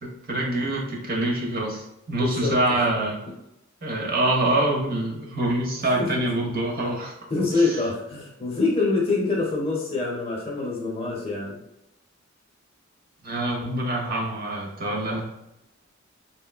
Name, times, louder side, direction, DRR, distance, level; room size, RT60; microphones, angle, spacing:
voice 1, 0.0-3.2 3.8-7.1 13.2-15.3, right 1 dB, 45° right, -1 dB, 0.7 m, -25 dB
voice 2, 2.1-2.6 6.0-6.1 7.3-11.6, left 3 dB, 30° left, -3 dB, 0.7 m, -25 dB
3.6 x 2.1 x 2.2 m, 0.84 s
head